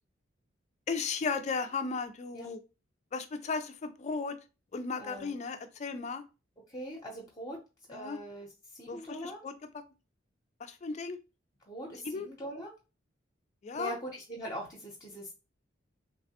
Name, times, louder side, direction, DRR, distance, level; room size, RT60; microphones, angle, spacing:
voice 1, 0.9-2.6 3.1-4.4 4.7-6.2 7.9-8.2 8.9-9.0 9.4-9.5 10.8-11.2 12.1-12.3 13.6-13.9, left 4 dB, 35° left, 9 dB, 0.3 m, -35 dB
voice 2, 5.0-5.3 6.7-7.6 7.9-9.4 11.7-12.7 13.7-15.3, equal, 20° left, -3 dB, 0.7 m, -41 dB
3.2 x 2.1 x 2.7 m, 0.29 s
head